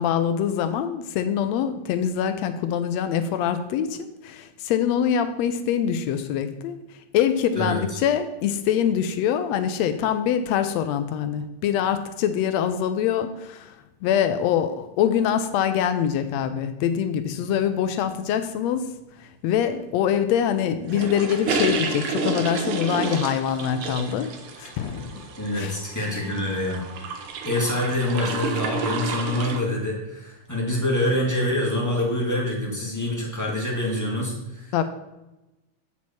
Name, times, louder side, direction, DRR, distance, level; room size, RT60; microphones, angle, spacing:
voice 1, 0.0-6.8 7.1-13.8 14.0-18.9 19.4-24.3 24.6-25.1 25.5-25.8 34.7-34.8, left 9 dB, 75° left, 10 dB, 1.7 m, -24 dB
sound 1, 20.9-29.6, right 4 dB, 65° right, 1.5 m, -30 dB
voice 2, 25.4-26.8 27.4-34.7, left 1 dB, 10° left, -3 dB, 1.1 m, -26 dB
8.4 x 6.2 x 4.3 m, 0.97 s
omnidirectional pair, 3.3 m